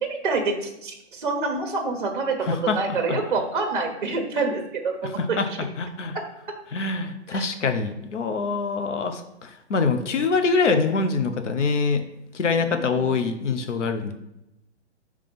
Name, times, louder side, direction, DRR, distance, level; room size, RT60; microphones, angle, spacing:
voice 1, 0.0-5.6 6.1-6.2 7.3-7.4 12.7-13.1, right 3 dB, 45° right, 3 dB, 0.9 m, -27 dB
voice 2, 2.5-2.8 3.1-3.2 5.2-5.5 5.8-6.2 6.7-12.0 12.3-14.1, left 4 dB, 80° left, 8 dB, 1.0 m, -24 dB
5.6 x 3.3 x 5.2 m, 0.88 s
hypercardioid pair, 175°, 35 cm